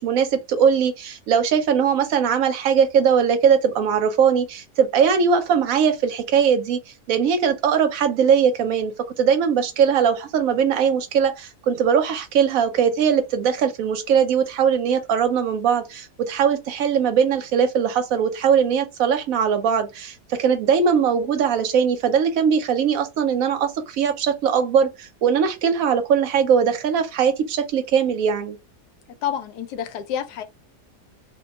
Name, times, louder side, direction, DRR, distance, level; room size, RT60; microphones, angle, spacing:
voice 1, 0.0-6.8 7.1-28.6, right 7 dB, 65° right, 1.0 m, -20 dB
voice 2, 29.2-30.4, left 9 dB, 85° left, 1.2 m, -28 dB
2.7 x 2.2 x 3.9 m
omnidirectional pair, 1.7 m